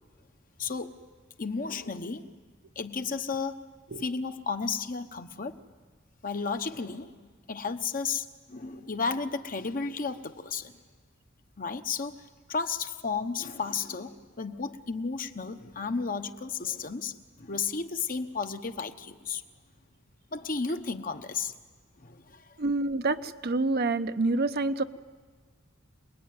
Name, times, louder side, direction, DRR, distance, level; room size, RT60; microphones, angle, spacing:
voice 1, 0.6-1.0 1.4-2.3 2.7-3.6 4.0-5.6 6.2-7.1 7.5-10.8 11.6-19.4 20.3-21.5 22.0-22.6, left 5 dB, 45° left, 8 dB, 1.1 m, -33 dB
voice 2, 22.6-24.8, right 3 dB, 50° right, 9 dB, 0.8 m, -27 dB
28.0 x 20.5 x 9.6 m, 1.5 s
head